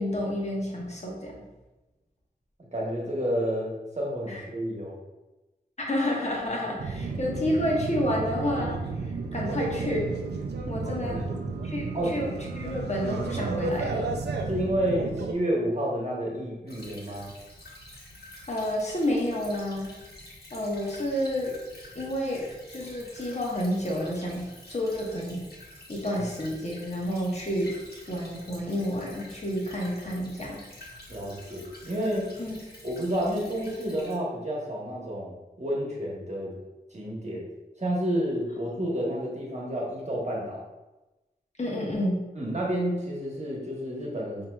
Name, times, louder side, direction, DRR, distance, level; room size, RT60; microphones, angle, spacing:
voice 1, 0.0-1.3 4.3-4.4 5.9-8.7 9.0-10.1 10.7-11.2 11.6-14.1 18.5-19.9 20.5-21.6 21.9-25.4 25.9-27.7 28.1-30.6 32.4-32.6 41.6-42.3, left 1 dB, 40° left, -3 dB, 1.0 m, -30 dB
voice 2, 2.7-4.9 7.0-7.2 11.0-11.4 11.9-12.2 14.5-17.3 26.2-26.3 31.1-32.3 32.8-36.6 36.9-37.4 37.8-40.6 42.4-44.5, equal, 45° right, -3 dB, 1.2 m, -30 dB
sound 1, 6.8-15.3, right 3 dB, 85° right, 0.4 m, -32 dB
Stream / Trickle dribble, 16.7-34.1, left 1 dB, 70° left, 1.2 m, -48 dB
5.6 x 2.8 x 2.3 m, 1.1 s
cardioid pair, 45°, 17 cm